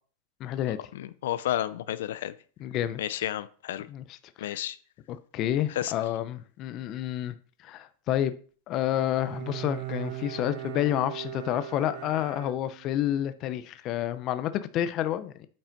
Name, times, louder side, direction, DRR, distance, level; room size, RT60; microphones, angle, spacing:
voice 1, 0.4-0.8 2.6-3.2 3.9-4.6 5.1-7.3 7.6-8.3 8.7-15.3, left 12 dB, 35° left, 0.7 m, -29 dB
voice 2, 0.9-2.3 3.0-3.9 4.4-4.8 5.8-5.9, left 12 dB, 80° left, 0.6 m, -31 dB
Bowed string instrument, 8.8-13.1, right 13 dB, 50° right, 0.9 m, -39 dB
8.8 x 5.5 x 5.8 m
supercardioid pair, 155°, 0 cm